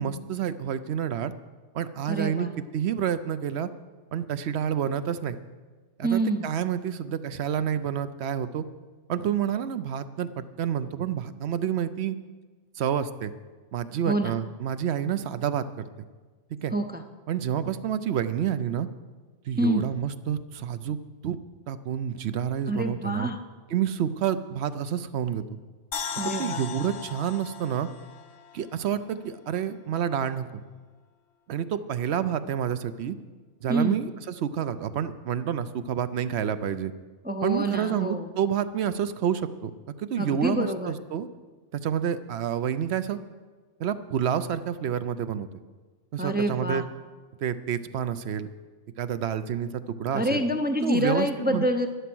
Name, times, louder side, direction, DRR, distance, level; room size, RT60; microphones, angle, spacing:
voice 1, 0.0-1.3 1.7-3.7 4.1-5.4 6.0-8.6 9.1-12.2 12.8-13.3 13.7-15.8 16.5-16.7 17.3-18.9 19.4-21.0 21.2-21.4 21.7-23.3 23.7-25.6 26.2-27.9 28.5-30.6 31.5-33.2 33.6-36.9 37.4-39.7 40.0-41.3 41.7-43.2 43.8-45.5 46.1-46.8 47.4-48.5 49.0-50.4 50.8-51.7, right 9 dB, 65° right, 12 dB, 0.9 m, -29 dB
voice 2, 2.1-2.5 6.0-6.5 14.1-14.3 16.7-17.0 19.6-19.8 22.7-23.4 26.2-26.6 33.7-34.0 37.2-38.3 40.2-40.9 46.2-46.9 50.1-51.9, right 1 dB, 15° right, 6 dB, 0.4 m, -27 dB
sound 1, 25.9-29.1 29.5-29.6, left 8 dB, 60° left, 1.0 m, -37 dB
11.5 x 11.0 x 6.1 m, 1.4 s
omnidirectional pair, 1.2 m